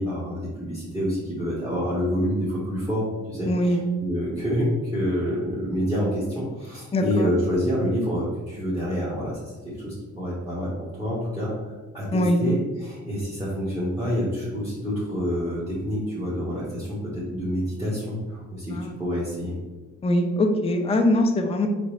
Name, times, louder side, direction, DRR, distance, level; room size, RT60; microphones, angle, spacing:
voice 1, 0.0-19.5, equal, 10° right, -7 dB, 1.5 m, -27 dB
voice 2, 3.5-3.8 6.9-7.3 12.1-12.4 18.7-18.9 20.0-21.7, left 1 dB, 20° left, 3 dB, 0.5 m, -22 dB
4.2 x 3.7 x 3.3 m, 1.3 s
cardioid pair, 90°, 30 cm